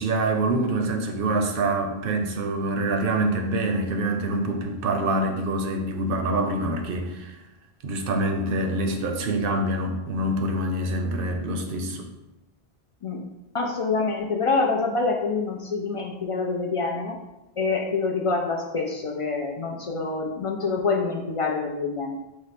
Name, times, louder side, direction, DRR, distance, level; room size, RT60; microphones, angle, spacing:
voice 1, 0.0-7.3 7.8-12.1, right 2 dB, 65° right, 4 dB, 0.7 m, -25 dB
voice 2, 13.5-17.2 17.6-22.2, left 4 dB, 65° left, 0 dB, 0.3 m, -26 dB
4.7 x 2.1 x 4.1 m, 0.99 s
omnidirectional pair, 1.1 m